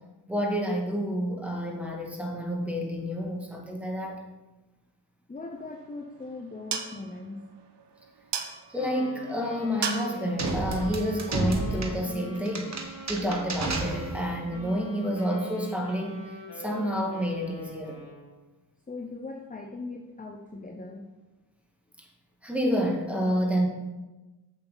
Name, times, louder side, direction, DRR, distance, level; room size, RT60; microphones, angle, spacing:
voice 1, 0.3-4.2 8.7-16.2 16.5-18.0 22.4-23.7, equal, 5° right, 0 dB, 2.0 m, -29 dB
voice 2, 5.3-7.4 18.9-21.1, left 3 dB, 20° left, 3 dB, 0.8 m, -39 dB
sound 1, 5.5-11.9, right 6 dB, 75° right, 0.9 m, -39 dB
Wind instrument woodwind instrument, 8.8-18.3, left 1 dB, 75° left, 2.3 m, -43 dB
sound 2, 10.4-14.5, right 2 dB, 40° right, 1.3 m, -32 dB
7.7 x 7.1 x 4.0 m, 1.1 s
cardioid pair, 65°, 41 cm